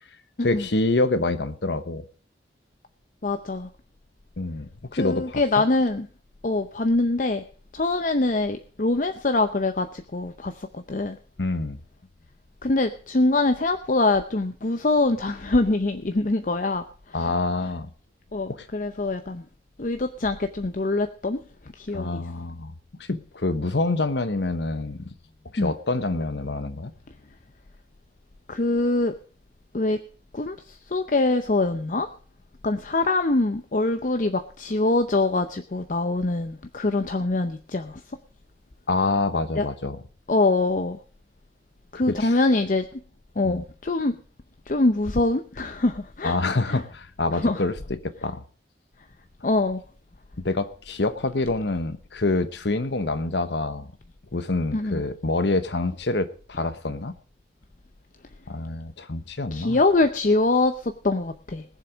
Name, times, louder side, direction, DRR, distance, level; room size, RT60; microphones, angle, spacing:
voice 1, 0.4-2.0 4.4-5.2 11.4-11.8 17.1-17.9 18.5-18.6 21.9-22.7 23.1-25.1 25.5-26.9 38.9-40.0 42.1-42.3 43.4-43.6 46.2-48.4 50.4-53.9 54.3-57.1 58.5-59.8, left 2 dB, 75° left, 12 dB, 1.1 m, -26 dB
voice 2, 3.2-3.7 4.9-6.1 6.4-7.5 7.7-11.2 12.6-17.3 18.3-19.5 19.8-22.3 23.1-23.2 25.6-25.7 28.5-29.1 29.7-30.0 30.3-32.1 32.6-38.0 39.5-39.7 40.3-41.0 41.9-43.0 43.4-44.2 44.7-46.4 46.7-46.8 47.3-47.6 49.4-49.8 54.7-55.0 59.5-61.6, left 2 dB, 45° left, 8 dB, 0.7 m, -24 dB
20.0 x 7.5 x 5.1 m, 0.41 s
head